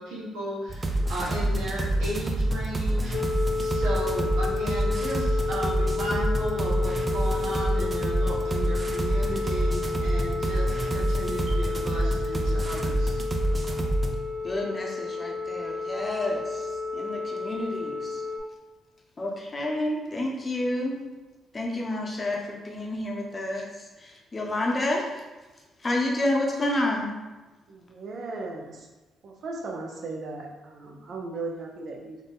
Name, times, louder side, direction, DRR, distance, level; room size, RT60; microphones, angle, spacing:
voice 1, 0.0-3.1 3.6-13.2, equal, 90° right, -5 dB, 1.2 m, -34 dB
sound 1, 0.7-14.2, right 1 dB, 25° right, 0.5 m, -27 dB
sound 2, 3.1-18.4, left 4 dB, 80° left, 0.8 m, -31 dB
voice 2, 14.4-18.2 19.2-21.0 21.5-23.7 24.0-25.0 25.8-27.2, left 1 dB, 30° left, 0 dB, 0.8 m, -29 dB
voice 3, 27.7-28.9 29.2-32.2, right 3 dB, 60° right, 0 dB, 0.7 m, -37 dB
4.0 x 2.6 x 3.6 m, 1.1 s
cardioid pair, 90°, 0 cm